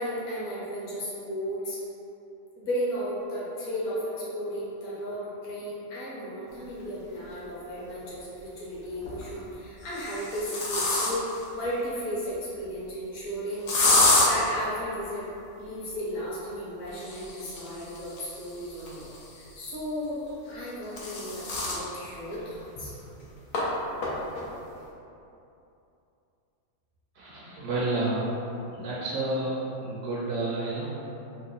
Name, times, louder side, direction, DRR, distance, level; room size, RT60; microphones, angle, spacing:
voice 1, 0.0-1.8 2.5-13.7 14.2-15.2 15.6-22.9, equal, 60° left, -8 dB, 1.3 m, -34 dB
sound 1, 7.3-7.4 8.8-9.3 9.8-11.4 13.7-14.3 16.9-19.5 20.5-21.8 22.3-22.4 22.8-22.9 23.5-23.6 24.0-24.4, left 2 dB, 80° left, 1.1 m, -27 dB
voice 2, 27.1-28.4 28.7-30.9, right 2 dB, 65° right, -5 dB, 0.8 m, -30 dB
3.3 x 2.1 x 3.8 m, 2.8 s
omnidirectional pair, 1.5 m